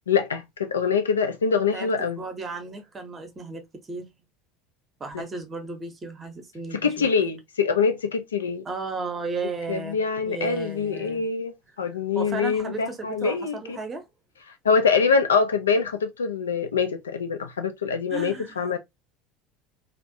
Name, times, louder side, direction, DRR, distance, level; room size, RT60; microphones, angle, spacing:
voice 1, 0.1-2.2 5.1-5.2 6.8-8.6 9.7-13.8 14.6-18.8, left 5 dB, 75° left, 0.4 m, -24 dB
voice 2, 1.7-3.6 3.9-4.1 5.0-7.3 8.6-10.0 10.2-11.3 12.1-14.0 18.1-18.8, right 4 dB, 25° right, 0.7 m, -34 dB
2.4 x 2.0 x 2.5 m
figure-of-eight pair, 70°, 0 cm